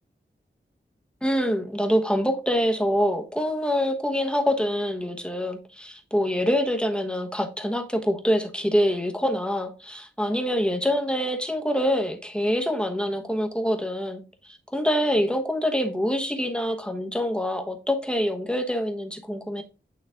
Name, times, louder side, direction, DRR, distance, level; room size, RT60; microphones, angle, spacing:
voice 1, 1.2-19.6, equal, 5° left, 1.2 m, -25 dB
9.1 x 3.2 x 3.6 m
wide cardioid pair, 75°, 20 cm